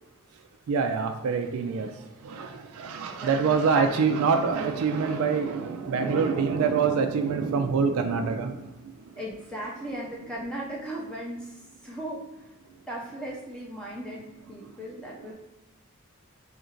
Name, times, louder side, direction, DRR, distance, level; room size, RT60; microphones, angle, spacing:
voice 1, 0.3-9.2 12.7-12.8 14.4-15.3, right 5 dB, 75° right, 5 dB, 0.3 m, -26 dB
voice 2, 3.1-4.2 9.2-12.2 12.9-15.3, right 1 dB, 5° left, -4 dB, 0.4 m, -37 dB
2.8 x 2.5 x 4.3 m, 1.0 s
head